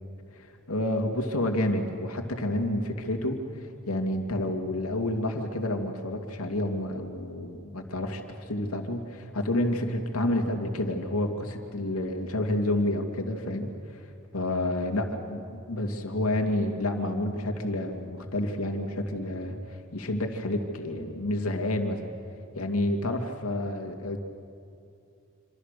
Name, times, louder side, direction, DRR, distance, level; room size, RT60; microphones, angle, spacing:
voice 1, 0.7-14.0 14.3-22.1 22.5-24.2, left 1 dB, 90° left, 4 dB, 2.5 m, -29 dB
27.0 x 26.0 x 6.8 m, 2.5 s
head